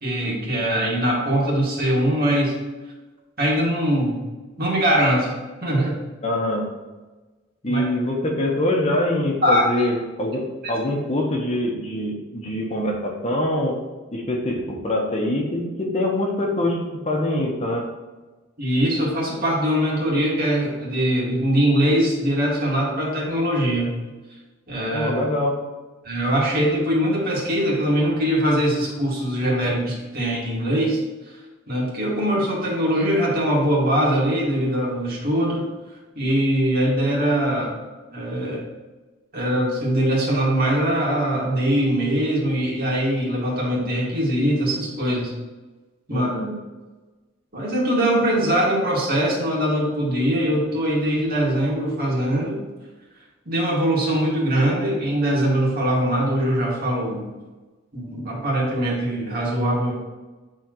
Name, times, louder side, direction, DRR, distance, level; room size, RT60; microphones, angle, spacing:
voice 1, 0.0-2.5 3.4-4.2 4.6-5.3 5.6-6.0 7.6-7.8 9.4-9.7 10.6-10.7 18.6-23.9 24.7-25.1 26.0-31.0 31.7-35.6 36.2-37.7 38.1-38.6 39.3-45.3 46.1-46.3 47.5-52.6 53.5-57.3 57.9-59.9, equal, 50° right, -4 dB, 2.0 m, -22 dB
voice 2, 6.2-6.6 7.6-13.8 14.1-16.8 17.0-17.8 24.9-25.6 46.1-46.5, left 1 dB, 35° left, -1 dB, 1.1 m, -24 dB
8.9 x 4.4 x 3.1 m, 1.2 s
head